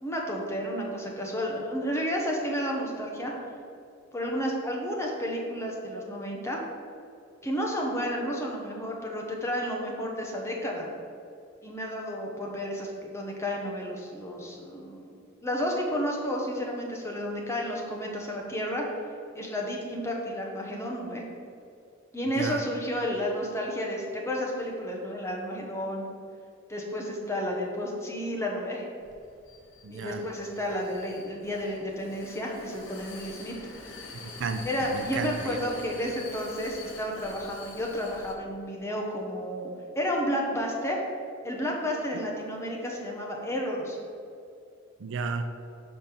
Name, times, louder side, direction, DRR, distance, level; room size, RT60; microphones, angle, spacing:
voice 1, 0.0-3.3 4.1-6.6 7.4-10.9 11.6-15.1 15.4-19.0 19.3-21.2 22.1-26.1 26.7-28.8 29.9-33.6 34.7-39.7 39.9-41.0 41.4-44.0, equal, 15° left, -1 dB, 1.1 m, -31 dB
Vehicle, 29.0-38.3, left 3 dB, 70° left, 1.0 m, -45 dB
voice 2, 29.8-30.2 34.1-35.6 45.0-45.5, right 4 dB, 65° right, 8 dB, 0.5 m, -33 dB
5.4 x 5.1 x 5.9 m, 2.5 s
head